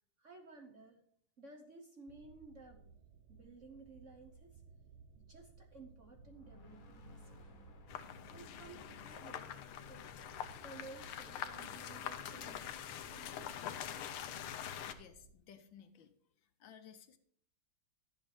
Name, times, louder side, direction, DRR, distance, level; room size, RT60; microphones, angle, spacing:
voice 1, 0.2-1.0 1.4-2.9 3.3-4.6 5.2-7.6 8.3-10.1 10.6-13.5, right 3 dB, 45° right, 3 dB, 1.0 m, -56 dB
sound 1, 2.1-15.3, right 5 dB, 80° right, 1.7 m, -60 dB
sound 2, 6.2-10.8, left 2 dB, 50° left, 1.4 m, -61 dB
sound 3, 7.9-14.9, left 10 dB, 85° left, 1.7 m, -45 dB
voice 2, 14.8-16.1 16.4-17.2, left 8 dB, 70° left, 8 dB, 1.5 m, -58 dB
12.0 x 7.3 x 4.8 m, 0.63 s
omnidirectional pair, 2.3 m